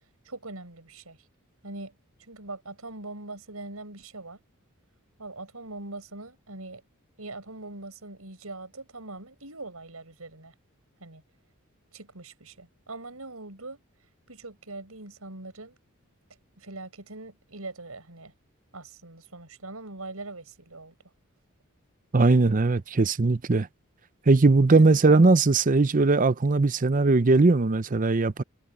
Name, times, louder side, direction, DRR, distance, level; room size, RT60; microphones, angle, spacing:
voice 1, 0.2-1.3 1.6-4.4 5.2-6.8 7.2-10.5 11.0-11.2 11.9-13.8 14.3-15.8 16.6-18.3 18.7-21.0 24.7-25.0, right 2 dB, 80° right, 5.8 m, -42 dB
voice 2, 22.1-23.7 24.3-28.4, right 3 dB, 40° right, 0.6 m, -20 dB
head